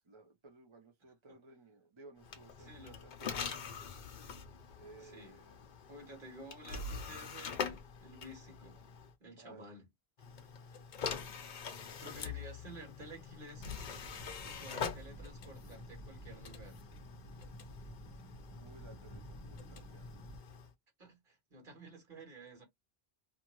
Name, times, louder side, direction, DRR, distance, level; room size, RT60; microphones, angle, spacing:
voice 1, 0.0-3.7 4.8-5.7 9.4-9.7 18.6-20.1, right 3 dB, 35° right, 0.7 m, -58 dB
sound 1, 2.2-9.1 10.2-20.7, left 6 dB, 55° left, 0.7 m, -45 dB
voice 2, 2.6-3.0 5.0-5.4 5.9-8.8 9.2-9.9 10.6-10.7 12.0-14.1 14.4-16.8 21.0-22.6, right 2 dB, 55° right, 1.5 m, -52 dB
sound 2, 13.5-20.4, equal, 20° left, 0.8 m, -52 dB
2.6 x 2.5 x 2.9 m
omnidirectional pair, 1.0 m